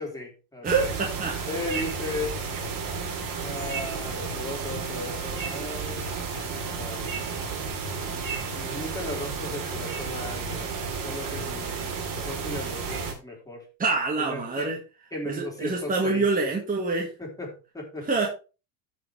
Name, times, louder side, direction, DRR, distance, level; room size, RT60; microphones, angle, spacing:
voice 1, 0.0-0.9 1.5-2.4 3.4-6.2 6.4-7.1 8.5-10.7 11.0-11.9 12.2-13.7 14.2-14.7 15.1-16.3 17.2-18.1, left 2 dB, 5° left, 0 dB, 3.5 m, -36 dB
voice 2, 0.6-1.4 13.8-14.8 15.3-17.1 18.1-18.3, right 3 dB, 15° right, -1 dB, 1.9 m, -26 dB
sound 1, 0.6-13.1, right 5 dB, 40° right, 3.3 m, -32 dB
14.5 x 5.3 x 3.4 m, 0.32 s
supercardioid pair, 115°, 50 cm